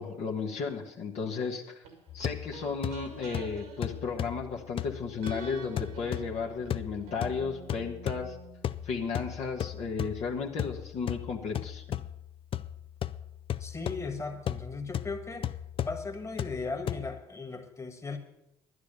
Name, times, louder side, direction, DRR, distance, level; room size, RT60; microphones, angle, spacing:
voice 1, 0.0-1.8 2.1-8.4 8.8-11.8, left 5 dB, 65° left, 1 dB, 1.4 m, -34 dB
sound 1, 1.8-4.8 5.2-9.0 9.3-9.4, right 3 dB, 85° right, 1.9 m, -47 dB
sound 2, 2.1-17.2, left 10 dB, 45° left, 0.4 m, -37 dB
voice 2, 13.6-15.5 15.8-18.2, left 4 dB, 25° left, 5 dB, 1.7 m, -37 dB
10.5 x 9.7 x 6.6 m, 0.86 s
hypercardioid pair, 55°, 12 cm